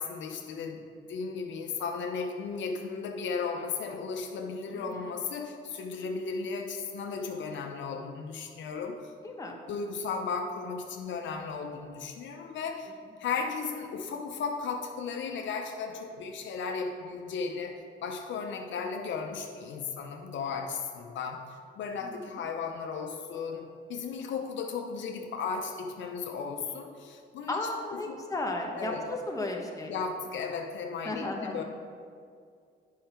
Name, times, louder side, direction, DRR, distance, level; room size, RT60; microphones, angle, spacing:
voice 1, 0.0-9.1 9.7-12.9 13.2-27.6 27.9-28.2 28.7-29.0 29.9-31.6, left 5 dB, 70° left, 3 dB, 0.7 m, -35 dB
voice 2, 4.7-5.1 9.2-9.6 22.0-22.4 27.5-29.9 31.0-31.6, left 2 dB, 15° left, 1 dB, 1.1 m, -35 dB
8.7 x 5.6 x 4.4 m, 2.2 s
cardioid pair, 90°, 20 cm